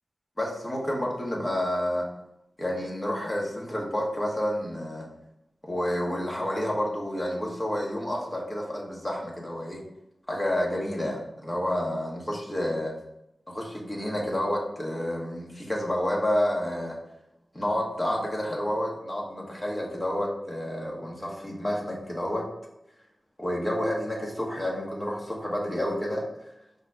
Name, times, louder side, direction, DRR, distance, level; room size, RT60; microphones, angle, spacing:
voice 1, 0.4-2.1 2.6-5.1 5.6-9.8 10.3-12.9 13.5-17.0 17.5-22.5 23.4-26.3, left 1 dB, 30° left, -2 dB, 1.8 m, -29 dB
5.6 x 3.4 x 5.1 m, 0.84 s
cardioid pair, 50°, 0 cm